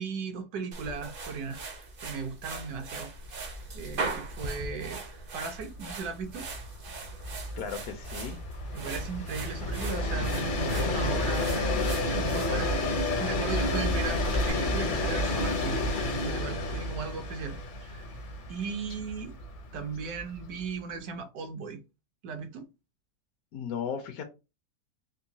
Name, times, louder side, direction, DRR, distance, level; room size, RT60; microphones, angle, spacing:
voice 1, 0.0-1.6 2.0-3.1 3.7-5.0 5.3-6.4 8.7-11.9 12.1-12.7 13.2-15.8 16.2-18.1 18.5-19.3 19.7-21.8 22.2-22.7, right 5 dB, 70° right, 1.1 m, -37 dB
sound 1, 0.7-14.5, right 3 dB, 50° right, 0.6 m, -40 dB
Train, 2.5-2.7 3.0-3.1 3.4-20.8, left 1 dB, 50° left, 0.6 m, -31 dB
voice 2, 7.3-8.4 23.5-24.2, left 7 dB, 70° left, 1.0 m, -36 dB
3.7 x 2.5 x 2.7 m
omnidirectional pair, 1.7 m